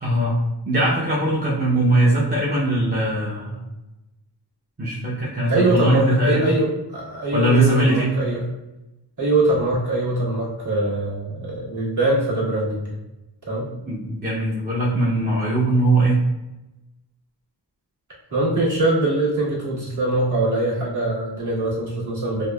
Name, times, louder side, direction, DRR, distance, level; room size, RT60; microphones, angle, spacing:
voice 1, 0.0-0.3 0.7-3.6 4.8-6.5 7.3-8.1 13.8-16.2, right 1 dB, 25° right, -7 dB, 0.6 m, -20 dB
voice 2, 5.5-8.4 9.2-13.0 13.5-13.7 18.3-22.5, right 2 dB, 45° right, -8 dB, 1.5 m, -22 dB
5.1 x 2.1 x 2.3 m, 0.97 s
wide cardioid pair, 120°, 43 cm